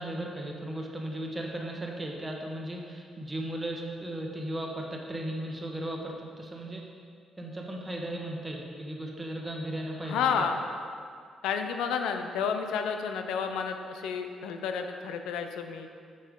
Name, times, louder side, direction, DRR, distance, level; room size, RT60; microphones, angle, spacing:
voice 1, 0.0-6.8 7.4-10.5, right 1 dB, 15° right, 0 dB, 1.1 m, -36 dB
voice 2, 10.0-10.6 11.4-15.9, left 6 dB, 90° left, 6 dB, 0.5 m, -31 dB
6.8 x 6.5 x 3.7 m, 2.2 s
cardioid pair, 90°, 0 cm